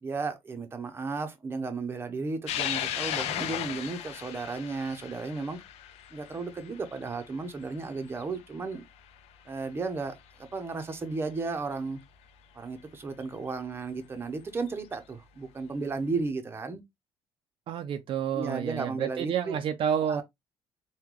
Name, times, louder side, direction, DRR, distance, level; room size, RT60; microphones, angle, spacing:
voice 1, 0.0-5.6 6.1-8.8 9.5-12.0 12.5-16.8 18.3-19.6 20.0-20.2, right 4 dB, 20° right, 0.7 m, -34 dB
sound 1, 2.5-9.1 9.6-9.7 10.9-11.0 13.2-13.3 14.7-15.0, left 11 dB, 80° left, 0.4 m, -36 dB
voice 2, 17.7-20.2, right 9 dB, 55° right, 0.4 m, -29 dB
3.6 x 2.2 x 2.9 m
cardioid pair, 135°, 11 cm